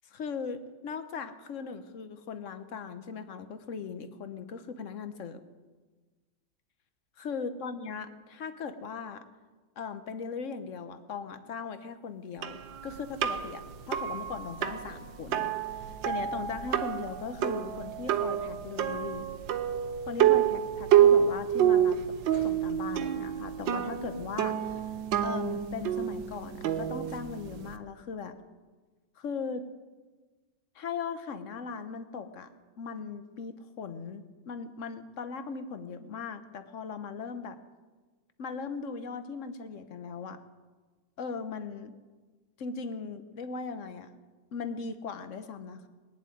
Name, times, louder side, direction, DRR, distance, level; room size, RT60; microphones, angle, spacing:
voice 1, 0.0-5.4 7.2-9.2 9.8-19.3 20.1-22.2 22.4-24.8 25.2-28.4 29.2-29.7 30.7-32.5 32.8-37.6 38.4-40.4 41.2-41.9 42.6-44.1 44.5-45.9, left 5 dB, 50° left, 10 dB, 1.0 m, -39 dB
sound 1, 12.4-27.8, right 10 dB, 80° right, 1.5 m, -28 dB
20.5 x 7.4 x 9.2 m, 1.4 s
omnidirectional pair, 2.0 m